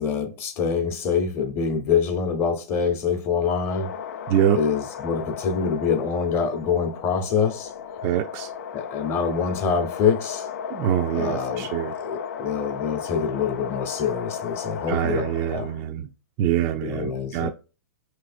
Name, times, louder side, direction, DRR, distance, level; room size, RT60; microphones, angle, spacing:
voice 1, 0.0-3.9 4.5-7.7 8.7-10.5 11.1-11.7 12.0-15.7 16.8-17.5, left 6 dB, 25° left, 0.8 m, -25 dB
sound 1, 3.4-15.9, left 7 dB, 65° left, 0.5 m, -35 dB
voice 2, 4.3-4.6 8.0-8.5 10.7-11.9 14.9-16.1 16.4-17.5, right 10 dB, 30° right, 0.3 m, -24 dB
5.3 x 3.2 x 2.5 m
hypercardioid pair, 145°, 9 cm